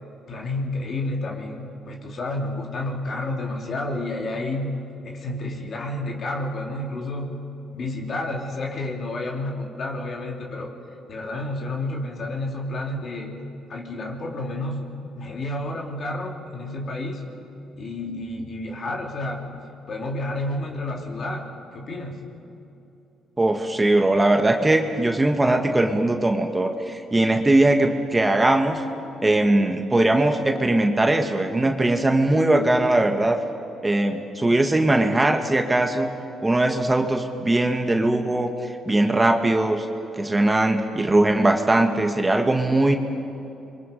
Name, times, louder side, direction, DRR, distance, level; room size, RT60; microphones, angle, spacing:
voice 1, 0.3-4.8 5.0-7.4 7.7-10.7 11.1-13.4 13.7-14.9 15.2-17.2 17.7-19.5 19.9-21.5 21.7-22.2, left 2 dB, 50° left, 0 dB, 3.4 m, -30 dB
voice 2, 23.4-28.8 29.2-33.4 33.8-36.1 36.4-39.9 40.2-43.0, right 2 dB, 20° right, 4 dB, 1.6 m, -20 dB
29.5 x 23.5 x 5.5 m, 2.9 s
cardioid pair, 90°, 0 cm